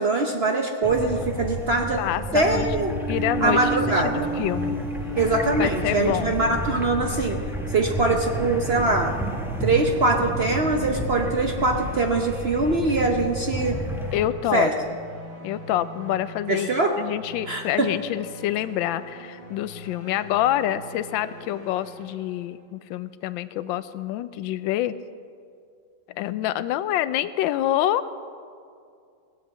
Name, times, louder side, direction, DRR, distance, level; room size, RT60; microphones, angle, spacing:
voice 1, 0.0-2.0 2.3-2.9 3.4-4.3 5.2-7.4 7.7-9.2 9.6-13.8 14.5-14.7 16.5-16.9 17.5-17.9, right 2 dB, 55° right, 3 dB, 0.7 m, -23 dB
sound 1, 0.8-14.3, right 1 dB, ahead, 0.7 m, -31 dB
voice 2, 2.0-2.7 3.1-3.6 4.0-4.8 5.6-6.4 14.1-14.7 15.4-16.7 17.0-24.9 26.2-28.1, left 13 dB, 80° left, 14 dB, 1.3 m, -26 dB
sound 2, 2.4-8.8, right 2 dB, 45° left, 1.1 m, -33 dB
sound 3, 3.9-22.8, left 1 dB, 40° right, 3.2 m, -43 dB
18.0 x 7.7 x 8.2 m, 2.3 s
omnidirectional pair, 2.1 m